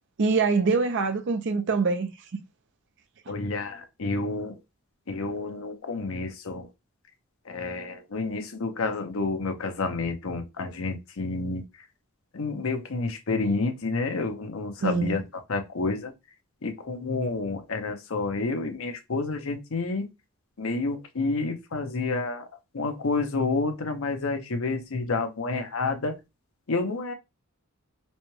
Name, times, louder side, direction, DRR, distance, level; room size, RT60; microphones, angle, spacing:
voice 1, 0.2-2.1 14.8-15.2, right 4 dB, 55° right, 0.5 m, -24 dB
voice 2, 3.3-4.5 5.1-6.7 7.5-11.6 12.3-16.1 16.6-20.1 20.6-22.5 22.7-26.2 26.7-27.1, left 3 dB, 70° left, 0.7 m, -29 dB
4.2 x 2.2 x 3.1 m
head